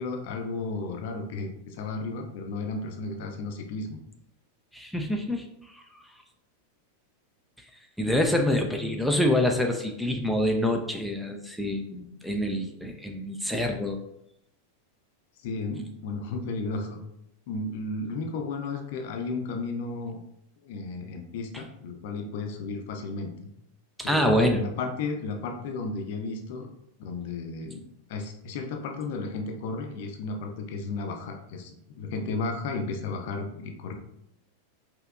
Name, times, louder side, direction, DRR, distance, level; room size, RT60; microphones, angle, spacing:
voice 1, 0.0-4.0 15.4-17.0 17.5-20.2 20.6-23.3 24.0-26.7 27.0-27.8 28.1-33.9, left 3 dB, 50° left, 4 dB, 0.6 m, -33 dB
voice 2, 4.7-5.5 5.7-6.0 8.0-14.0 24.0-24.6, left 1 dB, ahead, 3 dB, 0.4 m, -26 dB
5.4 x 2.9 x 2.3 m, 0.79 s
figure-of-eight pair, 90°, 0 cm